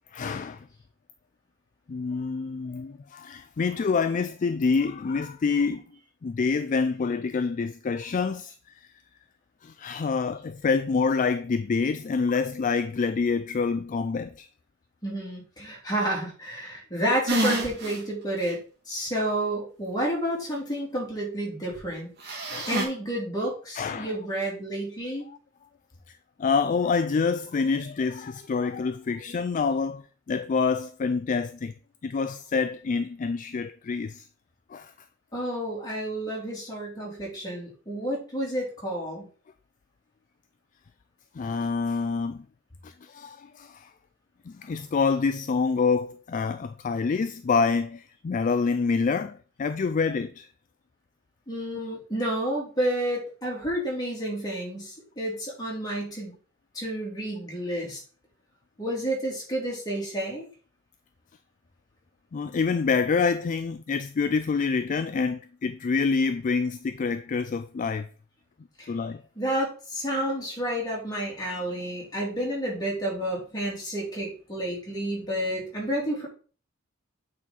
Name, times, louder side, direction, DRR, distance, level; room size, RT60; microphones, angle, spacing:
voice 1, 0.1-0.7 1.9-5.8 6.2-8.5 9.6-14.5 22.3-22.7 23.7-24.1 25.3-25.4 26.4-31.7 32.0-34.3 34.7-34.9 41.3-42.5 42.8-43.9 44.5-50.5 51.7-51.8 62.3-68.1 68.9-69.2, left 5 dB, 40° left, 0.4 m, -27 dB
voice 2, 15.0-18.6 18.9-22.1 22.7-25.3 35.3-39.3 51.5-56.3 56.7-58.0 58.8-60.5 68.8-68.9 69.4-76.3, right 1 dB, 20° left, 3.0 m, -30 dB
sound 1, 17.3-18.0 18.4-18.5 22.2-22.8, right 1 dB, 55° right, 2.0 m, -27 dB
8.5 x 4.3 x 3.9 m
head